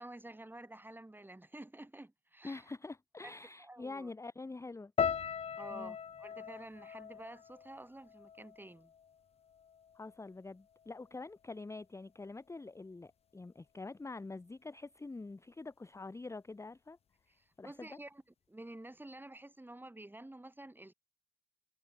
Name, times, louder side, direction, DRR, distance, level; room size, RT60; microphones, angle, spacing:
voice 1, 0.0-2.7 3.2-3.3 3.6-4.1 5.6-8.9 17.3-18.2 18.5-20.9, right 1 dB, 10° right, 5.3 m, -50 dB
voice 2, 2.4-4.9 5.7-6.0 9.9-17.0 17.6-18.0, left 3 dB, 15° left, 0.9 m, -46 dB
sound 1, 5.0-9.2 9.4-10.2 10.8-11.0, left 7 dB, 35° left, 0.5 m, -39 dB
hypercardioid pair, 60°, 18 cm